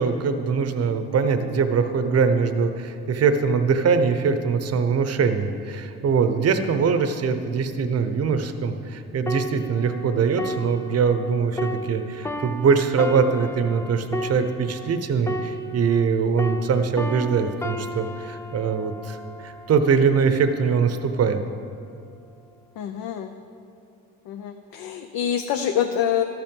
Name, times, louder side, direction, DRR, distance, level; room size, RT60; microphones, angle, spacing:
voice 1, 0.0-21.4, right 5 dB, 40° right, 9 dB, 0.8 m, -22 dB
sound 1, 9.3-16.1 16.4-20.0 20.6-20.8, equal, 5° left, 0.4 m, -33 dB
voice 2, 22.8-23.3 24.3-26.2, left 9 dB, 65° left, 5 dB, 0.7 m, -26 dB
13.0 x 5.8 x 5.3 m, 2.5 s
cardioid pair, 95°, 38 cm